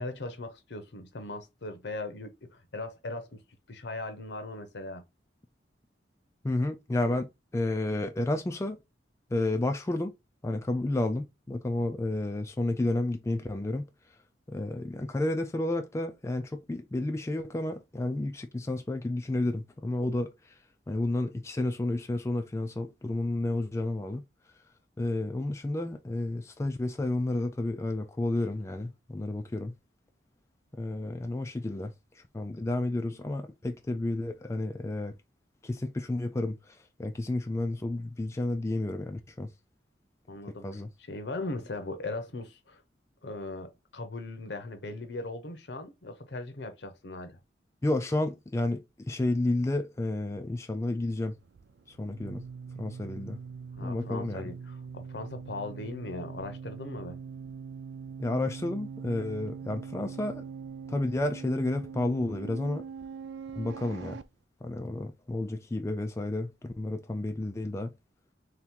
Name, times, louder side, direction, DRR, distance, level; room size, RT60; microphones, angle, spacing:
voice 1, 0.0-3.4 3.7-5.0 40.3-40.7 41.1-42.8 43.2-47.4 53.8-57.2, left 2 dB, 65° left, 0.8 m, -39 dB
voice 2, 6.4-8.8 9.3-10.1 10.4-13.9 14.5-20.6 20.9-24.2 25.0-29.7 30.7-35.2 35.6-39.5 40.6-40.9 47.8-51.4 51.9-52.4 52.8-53.4 53.8-54.5 58.2-60.4 60.9-62.8 63.6-64.2 64.6-67.9, left 2 dB, 15° left, 0.3 m, -31 dB
sound 1, 51.4-64.2, right 6 dB, 70° right, 0.4 m, -42 dB
3.3 x 2.9 x 3.6 m
head